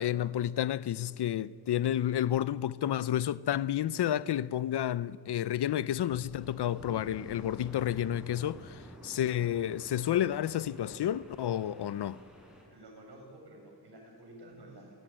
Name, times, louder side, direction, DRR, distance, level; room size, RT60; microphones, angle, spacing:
voice 1, 0.0-12.2, left 11 dB, 80° left, 0.6 m, -30 dB
sound 1, 5.9-12.6, equal, ahead, 5.6 m, -51 dB
voice 2, 12.7-15.0, right 1 dB, 85° right, 7.4 m, -51 dB
29.5 x 15.0 x 9.0 m
wide cardioid pair, 145°, 39 cm